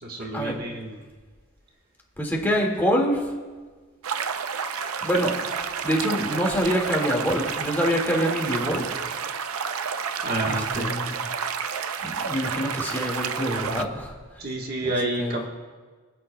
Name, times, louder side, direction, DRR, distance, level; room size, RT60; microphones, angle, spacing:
voice 1, 0.0-1.0 10.2-10.9 14.4-15.5, right 1 dB, 45° right, 0 dB, 1.3 m, -29 dB
voice 2, 2.2-3.3 5.0-5.3 5.8-8.9 10.4-11.1 12.0-14.5 14.8-15.5, equal, 10° left, -2 dB, 1.9 m, -26 dB
sound 1, 4.0-13.8, right 6 dB, 80° right, 0.5 m, -30 dB
26.0 x 9.2 x 2.2 m, 1.5 s
head